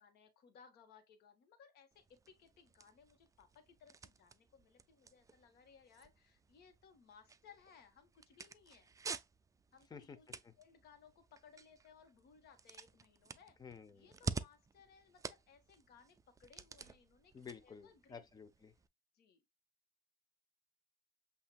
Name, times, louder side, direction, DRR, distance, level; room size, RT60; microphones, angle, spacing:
voice 1, 0.0-8.9 9.7-13.6 13.9-17.3 17.6-18.2 19.1-19.4, left 6 dB, 75° left, 1.5 m, -63 dB
sound 1, 1.9-18.9, right 4 dB, 20° right, 0.4 m, -50 dB
voice 2, 13.6-14.1 17.3-18.7, left 6 dB, 25° left, 0.8 m, -52 dB
7.7 x 2.8 x 2.4 m
cardioid pair, 110°, 17 cm